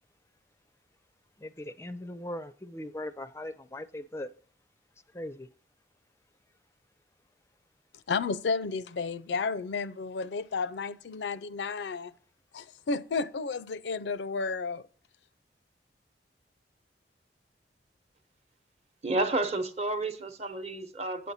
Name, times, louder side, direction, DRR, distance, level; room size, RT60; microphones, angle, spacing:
voice 1, 1.4-4.3 5.1-5.5, left 1 dB, 15° left, 0.4 m, -39 dB
voice 2, 8.1-12.1 12.5-14.8, left 4 dB, 85° left, 0.5 m, -32 dB
voice 3, 19.0-21.3, right 2 dB, 40° right, 0.9 m, -31 dB
8.5 x 8.3 x 4.1 m
head